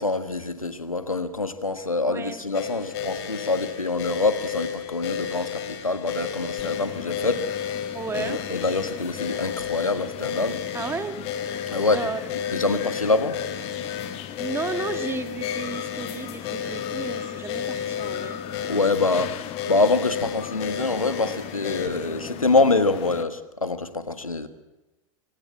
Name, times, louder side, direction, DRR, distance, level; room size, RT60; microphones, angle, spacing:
voice 1, 0.0-7.9 8.2-10.6 11.7-12.1 12.5-13.4 18.7-24.5, left 3 dB, 85° left, 11 dB, 1.5 m, -25 dB
voice 2, 2.0-2.4 7.9-8.4 10.7-11.2 11.9-12.3 14.4-18.4, right 4 dB, 15° right, 8 dB, 1.9 m, -33 dB
sound 1, 2.5-21.9, left 8 dB, 50° left, 2.9 m, -32 dB
sound 2, 6.6-23.2, left 12 dB, 35° left, 1.3 m, -39 dB
24.5 x 18.0 x 7.6 m, 1.0 s
figure-of-eight pair, 90°, 17 cm